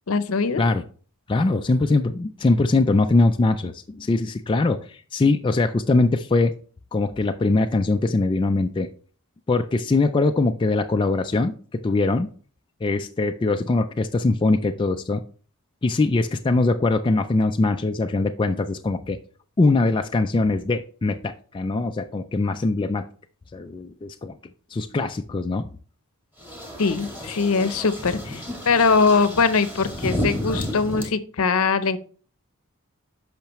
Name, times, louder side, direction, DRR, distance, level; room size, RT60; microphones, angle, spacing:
voice 1, 0.1-0.6 26.8-32.0, left 4 dB, 65° left, 13 dB, 0.7 m, -21 dB
voice 2, 1.3-6.5 6.9-8.9 9.5-12.3 12.8-15.2 15.8-19.2 19.6-23.1 23.5-24.4 24.7-25.7, left 3 dB, 20° left, 6 dB, 0.3 m, -22 dB
sound 1, 26.4-31.0, left 1 dB, 10° right, 2.0 m, -31 dB
8.7 x 5.7 x 3.0 m, 0.42 s
head